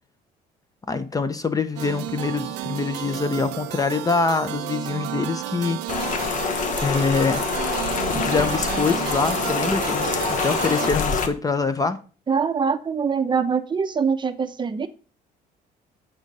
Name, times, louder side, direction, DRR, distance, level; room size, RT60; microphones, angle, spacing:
voice 1, 0.9-5.8 6.8-7.5 8.1-12.0, left 4 dB, 20° left, 0.6 m, -24 dB
sound 1, 1.8-10.9, right 13 dB, 85° right, 0.6 m, -31 dB
Rain, 5.9-11.3, left 5 dB, 50° left, 1.0 m, -25 dB
voice 2, 12.3-14.9, right 6 dB, 25° right, 0.7 m, -24 dB
8.2 x 3.6 x 5.3 m
cardioid pair, 110°, 17 cm